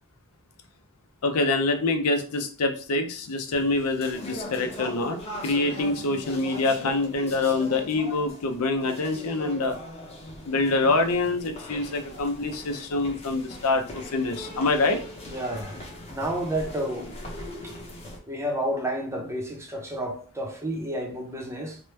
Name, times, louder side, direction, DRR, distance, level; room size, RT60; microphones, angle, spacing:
voice 1, 1.2-9.8 10.5-15.0, left 3 dB, 85° left, 0.5 m, -25 dB
sound 1, 3.5-18.2, left 1 dB, 30° left, 0.8 m, -40 dB
voice 2, 15.3-17.1 17.6-17.7 18.3-21.8, right 1 dB, 10° right, 0.6 m, -31 dB
3.0 x 2.1 x 3.2 m
head